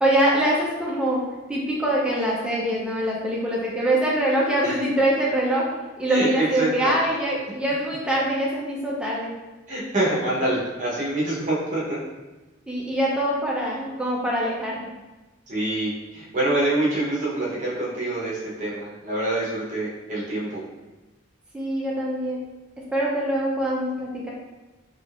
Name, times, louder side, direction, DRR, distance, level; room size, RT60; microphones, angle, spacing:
voice 1, 0.0-1.2 1.5-5.7 6.0-9.3 12.7-14.8 21.5-22.4 22.9-24.3, right 1 dB, 5° right, -4 dB, 0.5 m, -24 dB
voice 2, 6.1-6.9 9.7-12.0 15.5-20.6, right 1 dB, 40° right, -7 dB, 1.0 m, -26 dB
3.5 x 2.8 x 2.5 m, 1.1 s
head